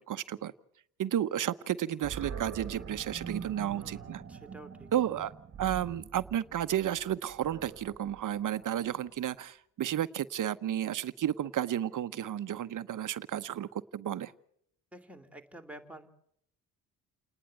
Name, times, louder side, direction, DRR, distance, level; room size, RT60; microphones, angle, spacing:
voice 1, 0.1-0.5 1.0-4.2 4.9-5.3 5.6-14.3, right 11 dB, 55° right, 0.9 m, -32 dB
Animal, 2.0-9.1, right 6 dB, 40° right, 1.4 m, -44 dB
voice 2, 3.6-4.9 14.9-16.1, right 1 dB, 5° right, 2.8 m, -49 dB
29.5 x 10.0 x 9.1 m
cardioid pair, 75°, 37 cm